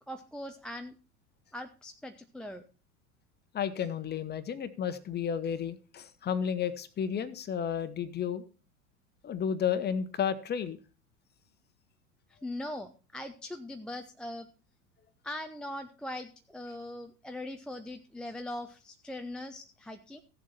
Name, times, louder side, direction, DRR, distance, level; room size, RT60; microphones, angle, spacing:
voice 1, 0.1-0.9 1.5-2.6 12.4-14.5 15.2-20.2, left 1 dB, ahead, 5 dB, 0.4 m, -41 dB
voice 2, 3.5-8.4 9.2-10.8, left 8 dB, 20° left, 13 dB, 1.1 m, -32 dB
15.5 x 7.4 x 4.2 m, 0.35 s
figure-of-eight pair, 85°, 45 cm